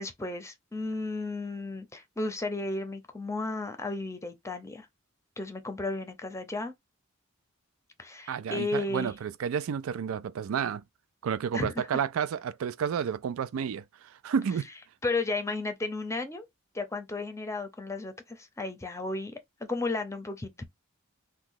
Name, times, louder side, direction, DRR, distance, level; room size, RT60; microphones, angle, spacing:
voice 1, 0.0-4.9 5.4-6.7 8.0-9.1 11.5-12.0 15.0-16.5 16.7-20.6, left 2 dB, 15° left, 0.6 m, -34 dB
voice 2, 8.3-10.8 11.2-13.8 14.2-14.7, right 7 dB, 80° right, 0.4 m, -30 dB
2.9 x 2.2 x 3.9 m
head